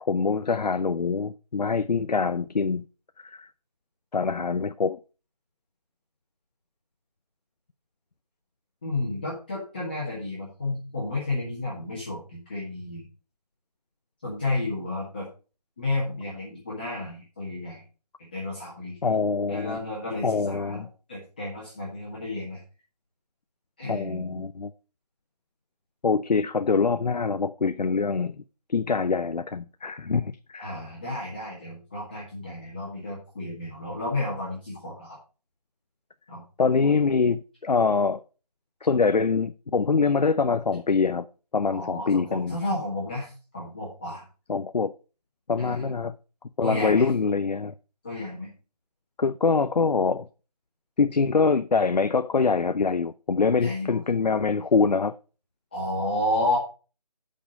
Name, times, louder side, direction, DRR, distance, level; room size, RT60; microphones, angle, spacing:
voice 1, 0.0-2.8 3.2-3.5 4.1-5.0 19.0-19.8 20.2-20.9 23.9-24.7 26.0-28.4 28.7-30.7 36.6-38.2 38.8-41.3 41.5-42.6 44.5-44.9 45.5-46.1 46.6-47.7 49.2-50.3 51.0-55.1, left 4 dB, 90° left, 0.6 m, -24 dB
voice 2, 8.8-13.0 14.2-15.3 15.8-17.8 18.2-19.0 19.5-22.6 23.8-24.5 30.6-35.2 36.3-36.4 41.7-44.2 45.6-45.9 46.6-47.1 48.0-48.5 53.6-54.0 55.7-56.6, left 2 dB, 15° left, 1.7 m, -32 dB
8.6 x 5.5 x 5.2 m
figure-of-eight pair, 175°, 21 cm